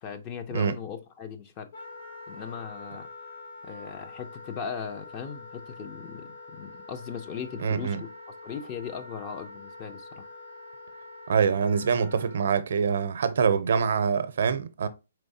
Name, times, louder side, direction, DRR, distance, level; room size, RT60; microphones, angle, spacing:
voice 1, 0.0-1.7 2.3-3.1 3.6-8.1 8.4-10.2, left 7 dB, 25° left, 0.5 m, -38 dB
Wind instrument woodwind instrument, 1.7-12.4, left 2 dB, 70° left, 2.5 m, -45 dB
voice 2, 7.6-8.0 11.3-14.9, right 6 dB, 70° right, 0.5 m, -25 dB
4.4 x 3.2 x 2.7 m
hypercardioid pair, 155°, 0 cm